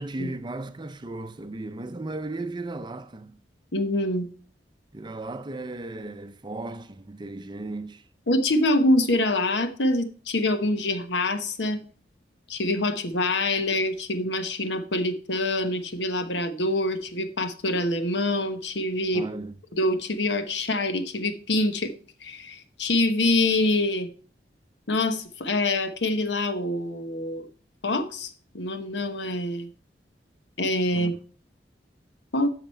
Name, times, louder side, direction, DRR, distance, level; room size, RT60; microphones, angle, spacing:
voice 1, 0.0-3.4 4.9-8.0 19.1-19.5 30.9-31.1, right 2 dB, 25° right, 0.5 m, -35 dB
voice 2, 3.7-4.3 8.3-11.8 12.5-19.3 19.8-21.9 22.2-24.1 24.9-27.4 27.8-28.3 28.5-29.7 30.6-31.1 32.3-32.5, left 1 dB, 85° left, 1.1 m, -25 dB
13.0 x 5.0 x 4.5 m
head